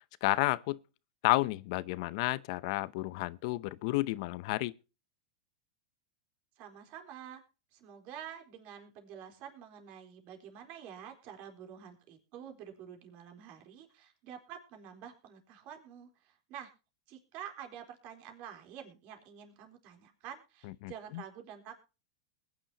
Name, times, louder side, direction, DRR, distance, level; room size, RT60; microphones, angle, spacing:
voice 1, 0.2-0.8 1.2-4.7 20.8-21.2, left 20 dB, 60° left, 0.7 m, -31 dB
voice 2, 6.6-7.4 7.7-16.7 17.1-21.8, right 9 dB, 50° right, 3.9 m, -48 dB
21.0 x 10.0 x 2.9 m
hypercardioid pair, 120°, 3 cm